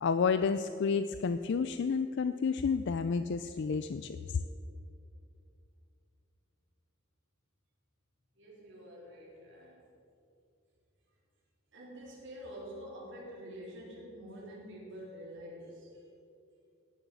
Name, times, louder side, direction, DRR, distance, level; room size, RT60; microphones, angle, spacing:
voice 1, 0.0-4.2, left 5 dB, 55° left, 11 dB, 0.4 m, -30 dB
voice 2, 8.4-9.8 11.7-16.0, equal, 60° right, -4 dB, 3.9 m, -47 dB
17.0 x 7.2 x 6.9 m, 2.5 s
head